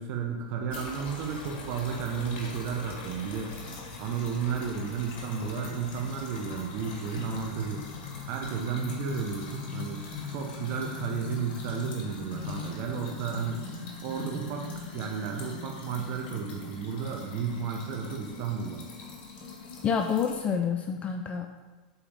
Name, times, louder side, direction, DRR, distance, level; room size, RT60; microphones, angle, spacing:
voice 1, 0.0-3.5 4.0-7.9 8.3-13.6 14.0-14.7 14.9-18.8, right 6 dB, 50° right, 2 dB, 0.9 m, -33 dB
sound 1, 0.7-20.5, left 4 dB, 50° left, 1.9 m, -41 dB
voice 2, 19.8-21.6, left 6 dB, 25° left, 5 dB, 0.4 m, -28 dB
7.2 x 4.2 x 5.1 m, 1.3 s
hypercardioid pair, 115°, 5 cm